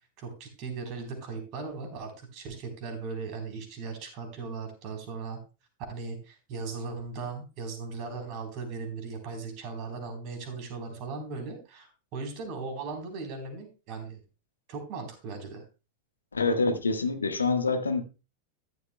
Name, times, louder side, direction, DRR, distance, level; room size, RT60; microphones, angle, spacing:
voice 1, 0.2-5.4 5.9-14.2 14.7-15.6, right 4 dB, 40° right, 4 dB, 3.6 m, -38 dB
voice 2, 16.3-18.0, left 3 dB, 75° left, 8 dB, 1.3 m, -26 dB
13.5 x 11.5 x 2.2 m, 0.30 s
figure-of-eight pair, 90°, 0 cm